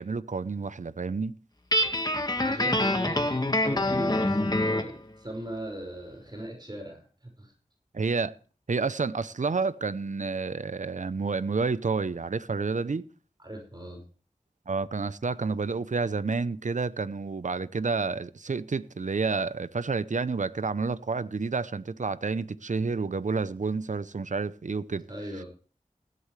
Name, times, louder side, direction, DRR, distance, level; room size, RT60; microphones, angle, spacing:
voice 1, 0.0-1.3 7.9-8.3 8.7-13.1 14.7-25.1, right 4 dB, 65° right, 0.7 m, -29 dB
Guitar, 1.7-4.9, left 1 dB, 30° left, 1.8 m, -25 dB
voice 2, 2.4-7.5 13.4-14.0 25.1-25.5, right 1 dB, 35° right, 5.5 m, -39 dB
16.5 x 11.5 x 3.3 m
wide cardioid pair, 45°, 14 cm